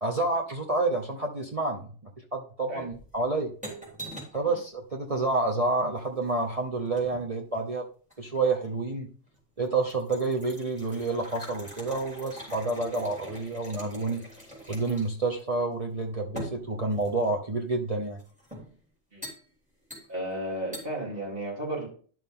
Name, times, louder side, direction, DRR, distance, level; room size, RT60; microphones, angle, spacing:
voice 1, 0.0-1.9 2.3-3.5 4.3-7.9 8.2-9.1 9.6-14.2 14.7-18.2, right 3 dB, 35° right, 1 dB, 0.9 m, -29 dB
sound 1, 2.9-4.5 5.9-7.3 8.1-8.8 9.3-9.4 9.7-15.3 15.5-15.6 16.4-17.4 18.2-18.7 19.2-19.4 19.9-20.3 20.7-20.9, equal, 5° right, 3.5 m, -43 dB
voice 2, 20.1-21.9, right 1 dB, 55° right, -4 dB, 4.0 m, -33 dB
10.5 x 6.4 x 3.7 m, 0.43 s
omnidirectional pair, 1.2 m